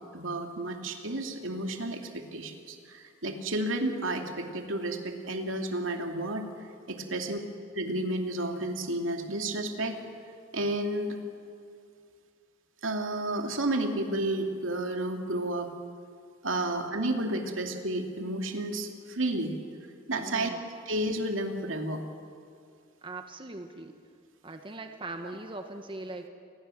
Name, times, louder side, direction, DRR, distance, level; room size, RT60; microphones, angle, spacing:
voice 1, 0.1-6.5 6.9-7.4 7.7-10.0 10.5-11.2 12.8-15.7 16.4-19.6 20.1-20.5 20.9-22.0, right 1 dB, 80° right, 4 dB, 2.6 m, -31 dB
voice 2, 20.2-20.7 23.0-24.0 24.4-26.3, right 2 dB, 25° right, 6 dB, 1.3 m, -40 dB
28.0 x 21.5 x 7.7 m, 2.3 s
head